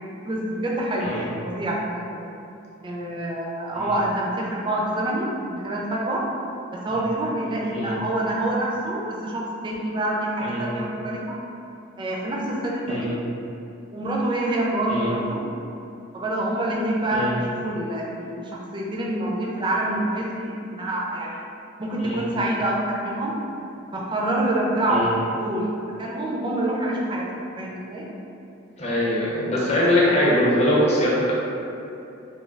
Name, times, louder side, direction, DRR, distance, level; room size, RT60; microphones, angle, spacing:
voice 1, 0.2-2.0 2.8-6.2 6.7-11.4 12.0-13.2 13.9-15.4 16.1-21.4 21.8-23.4 23.9-25.1 25.4-25.7 26.0-27.3 27.6-28.1, right 1 dB, 25° right, -3 dB, 0.3 m, -26 dB
voice 2, 28.8-31.3, left 1 dB, 35° left, -6 dB, 0.6 m, -22 dB
3.2 x 2.2 x 2.3 m, 2.7 s
head